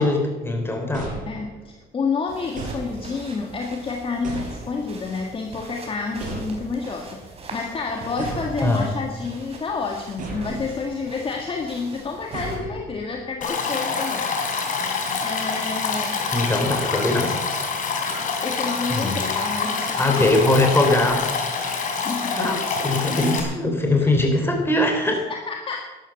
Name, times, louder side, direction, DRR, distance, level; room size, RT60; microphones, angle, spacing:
voice 1, 0.0-1.1 8.6-8.9 16.3-17.4 18.9-19.2 20.0-21.3 22.4-25.3, left 2 dB, 15° left, 3 dB, 3.7 m, -21 dB
sound 1, 0.9-1.8 2.6-3.4 4.2-5.1 6.2-7.0 8.2-9.2 10.2-11.0 12.3-13.2, right 3 dB, 50° right, 5.7 m, -35 dB
voice 2, 1.2-14.6 15.2-16.2 18.2-20.6 22.0-22.6 25.3-25.9, left 4 dB, 30° left, 2 dB, 1.7 m, -29 dB
sound 2, 2.3-12.6, right 3 dB, 35° right, 4.1 m, -43 dB
Stream, 13.4-23.4, left 4 dB, 50° left, 3.4 m, -26 dB
12.0 x 12.0 x 7.1 m, 1.2 s
cardioid pair, 110°, 17 cm